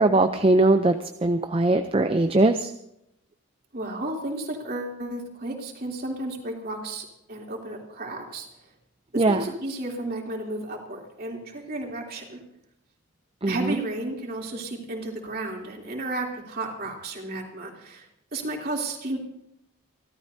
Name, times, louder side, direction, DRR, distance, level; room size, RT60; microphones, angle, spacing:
voice 1, 0.0-2.7 9.2-9.4 13.4-13.8, right 2 dB, 25° right, 8 dB, 0.5 m, -21 dB
voice 2, 3.7-8.5 9.1-12.4 13.5-19.2, right 2 dB, 45° right, 0 dB, 3.2 m, -33 dB
29.0 x 13.0 x 2.7 m, 0.80 s
head